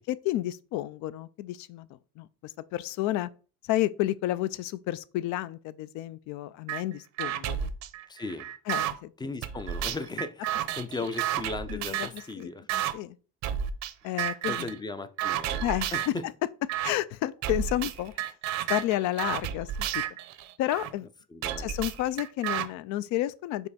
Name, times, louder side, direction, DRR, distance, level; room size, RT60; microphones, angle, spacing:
voice 1, 0.1-1.9 2.2-3.3 3.6-7.7 8.7-9.3 11.0-11.1 11.7-13.2 14.0-14.7 15.6-16.0 16.8-18.1 18.7-20.0 20.6-21.1 21.6-23.7, left 15 dB, 75° left, 0.5 m, -31 dB
sound 1, 6.7-6.8 7.2-8.9 9.4-12.2 12.7-12.9 13.4-13.9 14.2-14.8 15.2-16.2 16.7-16.9 17.4-20.9 21.4-22.7, right 11 dB, 70° right, 0.7 m, -31 dB
voice 2, 8.1-8.5 9.2-12.7 14.5-15.6 15.9-16.2 21.3-21.7, left 3 dB, 15° left, 0.4 m, -37 dB
5.5 x 4.6 x 4.1 m
cardioid pair, 135°, 29 cm